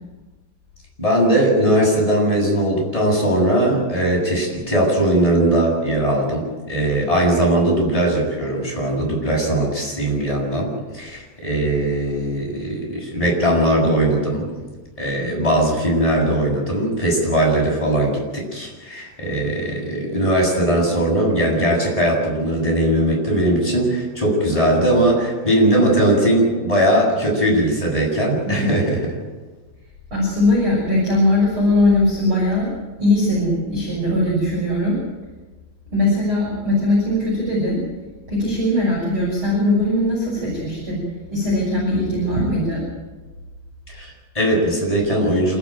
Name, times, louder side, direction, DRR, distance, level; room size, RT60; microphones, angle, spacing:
voice 1, 1.0-14.5 15.0-29.1 43.9-45.6, right 1 dB, 5° left, -2 dB, 7.5 m, -19 dB
voice 2, 30.1-32.7 33.0-35.0 35.9-37.8 38.3-41.0 41.3-42.8, left 1 dB, 25° right, -5 dB, 7.1 m, -20 dB
27.5 x 15.0 x 9.1 m, 1.2 s
omnidirectional pair, 5.8 m